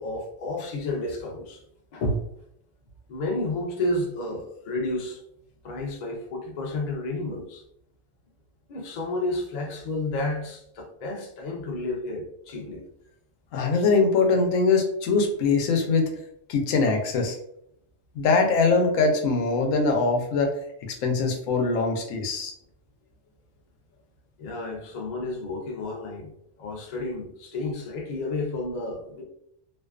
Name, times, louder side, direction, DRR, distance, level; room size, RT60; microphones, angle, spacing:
voice 1, 0.0-1.6 1.9-2.2 3.1-5.2 5.6-7.6 8.7-12.8 13.7-13.8 24.4-26.3 26.6-29.2, left 2 dB, 50° left, 0 dB, 0.5 m, -31 dB
voice 2, 13.5-16.1 16.5-17.4 18.2-20.5 21.0-22.5, left 4 dB, 90° left, 3 dB, 1.0 m, -22 dB
2.5 x 2.2 x 2.3 m, 0.72 s
omnidirectional pair, 1.3 m